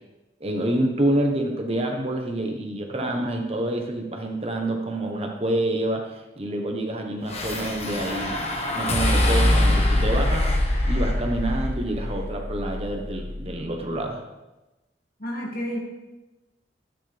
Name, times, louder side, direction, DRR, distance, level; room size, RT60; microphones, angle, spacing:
voice 1, 0.4-8.4 8.7-10.5 10.8-14.2, right 1 dB, 35° right, 2 dB, 1.2 m, -27 dB
sound 1, 7.3-13.6, left 1 dB, 35° left, 1.4 m, -24 dB
voice 2, 15.2-15.8, equal, 55° left, -2 dB, 2.5 m, -30 dB
12.5 x 9.3 x 3.4 m, 1.0 s
head